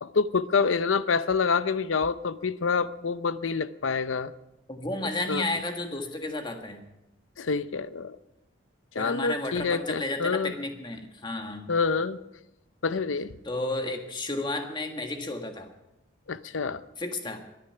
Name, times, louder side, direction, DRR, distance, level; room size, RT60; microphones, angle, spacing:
voice 1, 0.0-4.3 5.3-5.4 7.4-8.2 8.9-10.5 11.7-12.2 12.8-13.3 16.3-16.8, left 5 dB, 80° left, 15 dB, 0.6 m, -27 dB
voice 2, 4.7-6.8 9.0-11.7 13.4-15.7 17.0-17.4, left 2 dB, 25° left, 5 dB, 1.6 m, -32 dB
22.5 x 10.0 x 5.8 m, 0.91 s
head